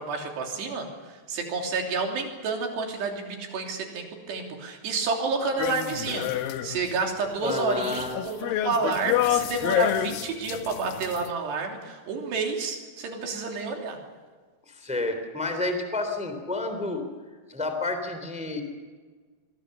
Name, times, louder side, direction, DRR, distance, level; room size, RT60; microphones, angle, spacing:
voice 1, 0.0-14.0, right 4 dB, 60° right, 2 dB, 5.1 m, -30 dB
sound 1, 5.6-6.9 7.3-11.3, left 12 dB, 85° left, 2.0 m, -28 dB
voice 2, 7.4-8.2 14.7-17.0 17.5-18.6, left 2 dB, ahead, 6 dB, 2.2 m, -30 dB
26.5 x 22.5 x 6.8 m, 1.5 s
omnidirectional pair, 5.5 m